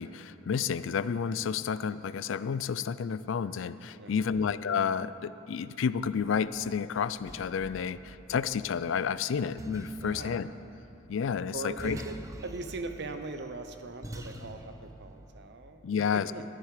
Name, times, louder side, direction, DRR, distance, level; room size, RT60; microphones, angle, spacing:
voice 1, 0.0-10.5 11.1-12.0 15.8-16.3, left 6 dB, 70° left, 15 dB, 0.4 m, -30 dB
voice 2, 3.9-4.4 10.0-10.4 11.5-15.8 16.1-16.4, right 3 dB, 55° right, 8 dB, 0.8 m, -40 dB
sound 1, 6.6-15.5, right 1 dB, 15° right, 0.7 m, -46 dB
13.5 x 11.0 x 4.9 m, 2.7 s
head